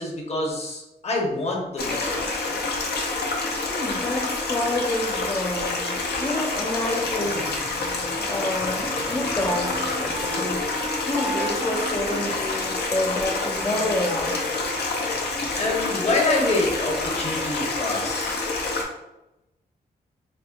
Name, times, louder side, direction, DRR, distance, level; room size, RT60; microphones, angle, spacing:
voice 1, 0.0-2.6 15.5-18.5, left 2 dB, 40° left, -2 dB, 0.9 m, -26 dB
Stream, 1.8-18.9, left 3 dB, 70° left, 0.6 m, -27 dB
voice 2, 3.7-7.7 8.0-10.7 11.1-14.5, left 1 dB, 20° left, -1 dB, 0.4 m, -28 dB
Wind instrument woodwind instrument, 7.2-14.5, right 2 dB, 40° right, 0.6 m, -38 dB
4.2 x 2.0 x 2.3 m, 0.94 s
cardioid pair, 80°, 17 cm